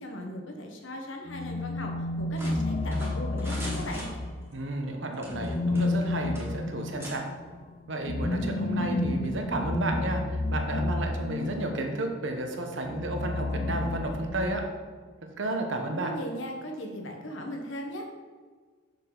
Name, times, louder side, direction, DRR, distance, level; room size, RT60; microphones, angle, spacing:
voice 1, 0.0-1.9 2.2-4.1 15.9-18.1, equal, 75° left, 2 dB, 1.1 m, -38 dB
sound 1, 1.3-4.6 5.3-11.9 12.8-14.8, left 2 dB, 35° left, 0.5 m, -31 dB
sound 2, 2.4-4.6 5.1-6.1 6.3-6.5 7.0-7.2, right 1 dB, 10° right, 1.4 m, -42 dB
voice 2, 4.5-7.3 7.9-14.6 15.4-16.1, right 2 dB, 70° right, 4 dB, 1.0 m, -32 dB
6.7 x 6.4 x 3.8 m, 1.5 s
head